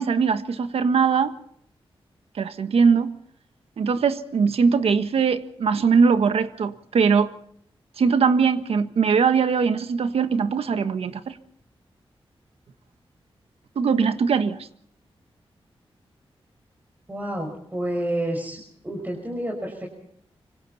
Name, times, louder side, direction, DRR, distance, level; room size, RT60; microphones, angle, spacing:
voice 1, 0.0-1.3 2.4-3.2 3.8-7.3 8.0-11.4 13.7-14.6, right 5 dB, 85° right, 1.5 m, -21 dB
voice 2, 17.1-19.9, right 1 dB, 20° right, 5.5 m, -29 dB
26.0 x 24.5 x 4.2 m
wide cardioid pair, 110°, 10 cm